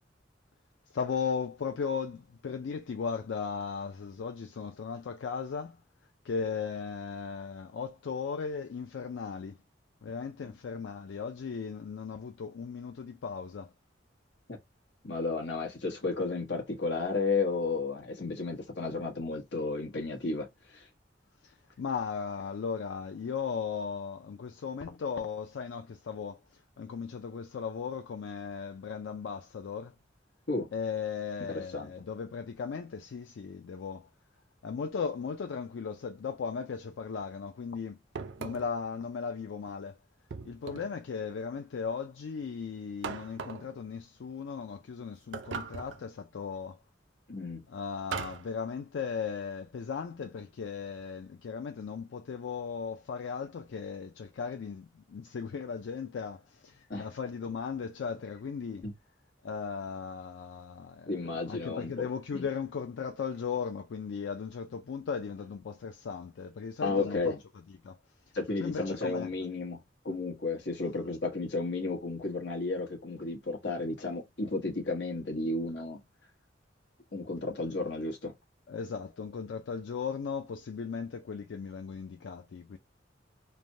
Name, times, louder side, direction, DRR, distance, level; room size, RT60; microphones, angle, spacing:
voice 1, 0.9-5.8 6.2-9.6 10.0-13.7 21.4-29.9 30.7-34.1 34.6-38.0 38.4-40.0 40.4-46.8 47.7-58.8 59.4-61.2 61.4-67.3 67.8-68.0 68.6-69.3 78.7-82.8, left 6 dB, 85° left, 0.4 m, -37 dB
voice 2, 15.0-20.5 20.7-20.9 30.5-30.7 31.5-31.9 47.3-47.6 56.9-57.1 58.8-58.9 61.1-62.1 62.3-62.4 66.8-67.4 68.3-69.8 70.0-76.0 77.1-78.3, left 3 dB, 65° left, 1.0 m, -33 dB
sound 1, 38.2-38.8 40.3-41.0 43.0-43.7 45.3-46.1 48.1-48.5, right 5 dB, 85° right, 0.5 m, -39 dB
3.2 x 2.1 x 2.6 m
head